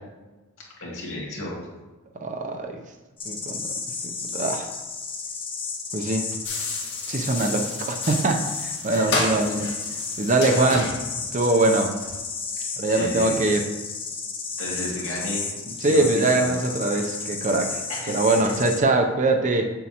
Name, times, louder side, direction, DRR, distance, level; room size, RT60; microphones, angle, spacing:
voice 1, 0.8-1.6 8.9-9.2 10.5-10.8 12.9-13.4 14.6-15.5 15.8-16.5 16.9-17.0 17.9-18.5, left 1 dB, 70° left, -4 dB, 2.2 m, -33 dB
voice 2, 2.2-2.8 3.2-3.6 4.3-4.7 5.9-6.3 7.1-9.8 10.2-10.9 11.3-11.9 12.8-13.6 15.8-17.8 18.1-19.7, right 2 dB, 35° right, 4 dB, 0.6 m, -22 dB
sound 1, 3.2-18.8, left 5 dB, 25° left, 0.7 m, -32 dB
sound 2, 6.4-12.2, left 2 dB, 55° left, 1.9 m, -32 dB
7.5 x 7.2 x 3.0 m, 1.2 s
head